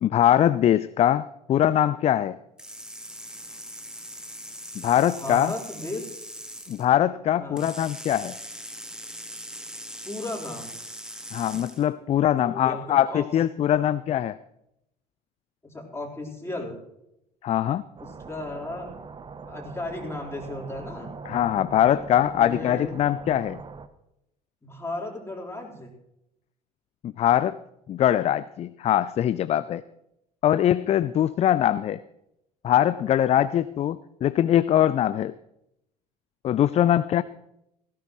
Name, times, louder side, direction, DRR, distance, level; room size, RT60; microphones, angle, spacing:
voice 1, 0.0-2.4 4.8-5.5 6.7-8.4 11.3-14.4 17.4-17.8 21.3-23.6 27.0-27.6 27.9-29.8 30.4-32.0 32.6-35.3 36.4-37.2, left 11 dB, 30° left, 16 dB, 0.4 m, -22 dB
sound 1, 2.6-6.9 7.6-11.9, equal, 5° right, 1.7 m, -40 dB
voice 2, 5.2-6.0 7.4-7.7 10.0-10.7 12.2-13.3 13.8-13.9 15.6-16.8 18.0-18.9 19.5-21.1 22.3-22.9 24.6-25.9, left 2 dB, 10° left, -1 dB, 4.1 m, -35 dB
sound 2, 18.0-23.9, right 4 dB, 25° right, 0.9 m, -41 dB
18.0 x 16.0 x 3.1 m, 0.83 s
figure-of-eight pair, 60°, 21 cm